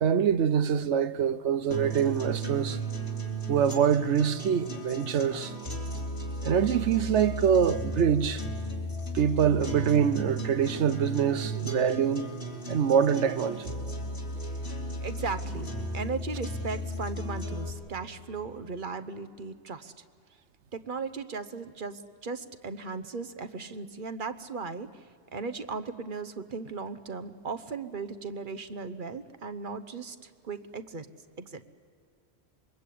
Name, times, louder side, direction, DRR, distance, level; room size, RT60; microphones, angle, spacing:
voice 1, 0.0-2.8 3.5-5.5 6.4-8.4 9.1-12.3 12.7-13.7, right 8 dB, 90° right, 1.1 m, -25 dB
sound 1, 1.7-17.7, right 1 dB, 65° left, 3.9 m, -35 dB
voice 2, 15.0-19.9 20.7-25.1 25.3-31.1 31.4-31.7, right 4 dB, 50° right, 1.1 m, -37 dB
26.5 x 23.0 x 8.5 m
omnidirectional pair, 1.1 m